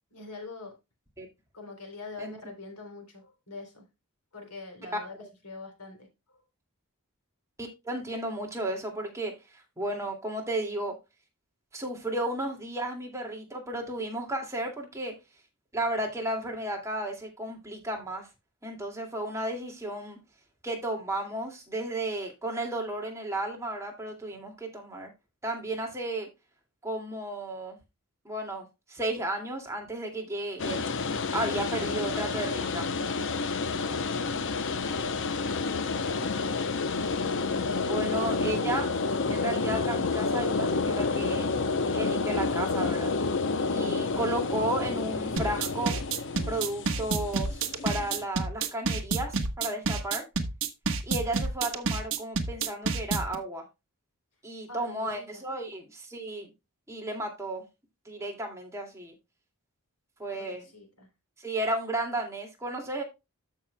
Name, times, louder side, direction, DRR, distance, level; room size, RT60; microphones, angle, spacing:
voice 1, 0.1-0.8 1.5-3.9 4.3-5.2 5.4-6.4 34.1-34.5 35.5-36.6 44.0-44.3 54.7-55.4 60.3-61.1, left 3 dB, 85° left, 3.5 m, -44 dB
voice 2, 7.6-9.3 9.8-10.9 11.7-15.1 15.7-18.3 18.6-20.2 20.6-25.1 25.4-26.3 26.8-27.8 28.2-32.9 37.8-38.9 39.3-41.5 41.9-43.1 43.7-45.9 46.5-50.2 51.1-53.6 54.4-56.5 56.9-57.6 58.1-59.1 60.2-60.6 61.4-63.0, right 1 dB, 15° right, 2.3 m, -33 dB
sound 1, 30.6-48.2, left 4 dB, 55° left, 0.7 m, -29 dB
sound 2, 45.4-53.4, right 4 dB, 60° right, 1.3 m, -29 dB
14.0 x 5.7 x 2.2 m
head